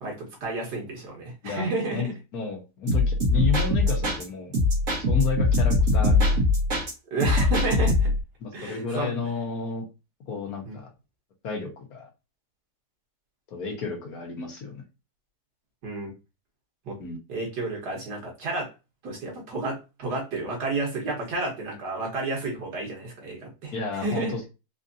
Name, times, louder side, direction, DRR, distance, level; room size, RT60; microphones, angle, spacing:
voice 1, 0.0-2.1 7.1-8.1 8.5-9.1 10.6-10.8 15.8-16.1 16.9-17.0 17.3-18.7 19.0-24.3, right 2 dB, 85° right, 0 dB, 1.9 m, -31 dB
voice 2, 1.9-4.6 5.1-6.4 8.4-9.8 10.3-10.9 11.4-12.1 13.5-14.8 17.0-17.2 23.7-24.5, left 5 dB, 70° left, 2 dB, 1.4 m, -31 dB
sound 1, 2.9-4.2 4.5-6.9 7.2-8.2, left 2 dB, 60° right, 1.7 m, -22 dB
4.4 x 2.6 x 2.6 m, 0.27 s
omnidirectional pair, 1.7 m